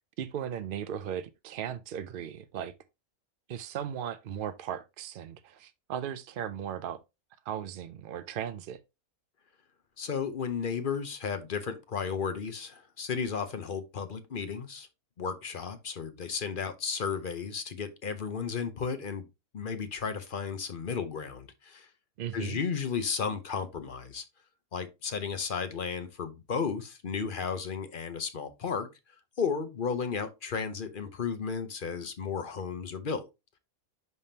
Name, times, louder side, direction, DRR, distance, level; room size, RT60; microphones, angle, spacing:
voice 1, 0.2-2.7 3.5-7.0 7.5-8.8 22.2-22.6, right 9 dB, 70° right, 0.5 m, -37 dB
voice 2, 10.0-14.9 15.2-19.2 19.5-21.9 22.3-24.2 24.7-28.9 29.4-33.3, left 6 dB, 45° left, 0.8 m, -34 dB
10.5 x 3.6 x 2.7 m
omnidirectional pair, 1.5 m